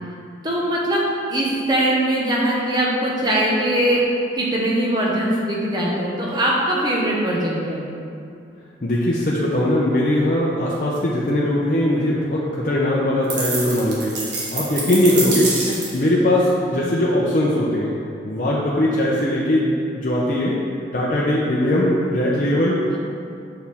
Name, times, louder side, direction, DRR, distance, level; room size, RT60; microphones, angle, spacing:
voice 1, 0.4-1.0 1.3-4.0 4.4-7.9 15.7-15.8, right 1 dB, 25° right, -4 dB, 0.9 m, -21 dB
voice 2, 8.8-14.2 14.5-15.5 15.9-17.9 18.2-20.6 20.9-23.0, left 1 dB, 45° left, -5 dB, 0.6 m, -20 dB
sound 1, 13.3-16.1, right 3 dB, 80° right, 1.2 m, -26 dB
6.7 x 4.8 x 3.5 m, 2.5 s
head